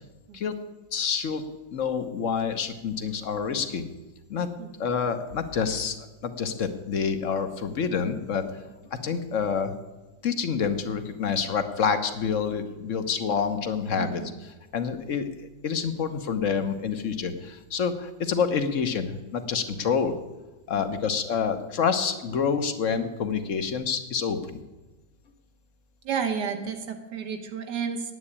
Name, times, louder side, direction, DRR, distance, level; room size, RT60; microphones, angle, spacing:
voice 1, 0.9-1.5 1.7-3.8 4.3-4.5 4.8-5.9 6.2-8.5 8.9-9.7 10.2-14.2 14.7-15.3 15.6-20.1 20.7-24.6, left 6 dB, 50° left, 9 dB, 1.2 m, -27 dB
voice 2, 14.0-14.3 20.7-21.0 26.0-28.1, right 6 dB, 70° right, 6 dB, 1.8 m, -32 dB
9.8 x 8.6 x 8.5 m, 1.1 s
omnidirectional pair, 1.9 m